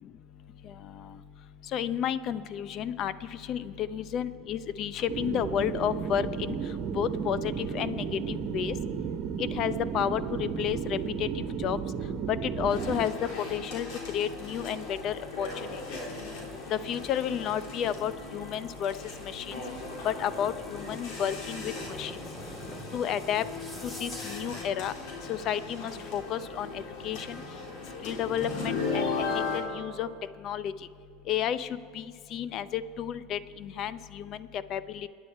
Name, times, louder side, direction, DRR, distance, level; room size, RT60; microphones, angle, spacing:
voice 1, 1.7-6.6 6.9-8.8 9.4-11.8 12.3-13.1 13.5-13.9 14.1-15.5 15.9-16.0 16.7-18.9 19.2-19.5 20.0-21.7 22.0-22.1 22.9-23.4 23.8-24.9 25.3-27.4 28.0-29.1 29.5-30.1 30.4-30.7 31.3-31.7 31.9-32.0 32.3-35.1, left 9 dB, 50° left, 14 dB, 0.7 m, -31 dB
sound 1, 5.1-13.0, right 6 dB, 55° right, 1.3 m, -33 dB
sound 2, 12.7-29.6, left 4 dB, 65° left, 3.5 m, -37 dB
sound 3, 13.9-24.7, equal, 15° left, 2.4 m, -48 dB
27.0 x 9.8 x 4.6 m, 2.4 s
supercardioid pair, 105°, 0 cm